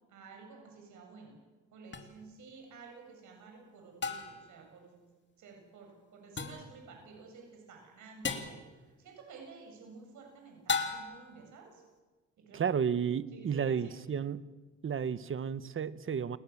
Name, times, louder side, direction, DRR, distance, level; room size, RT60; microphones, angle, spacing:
voice 1, 0.1-1.4 1.7-5.1 5.4-11.8 12.4-12.8 13.3-14.0, right 4 dB, 75° right, 2 dB, 7.6 m, -52 dB
sound 1, 1.9-2.0 4.0-4.5 6.4-6.7 8.2-8.6 10.7-11.3, left 4 dB, 35° left, 3.1 m, -35 dB
voice 2, 12.5-14.4 14.8-16.4, right 7 dB, 45° right, 15 dB, 1.2 m, -32 dB
30.0 x 20.0 x 7.3 m, 1.3 s
cardioid pair, 90°, 30 cm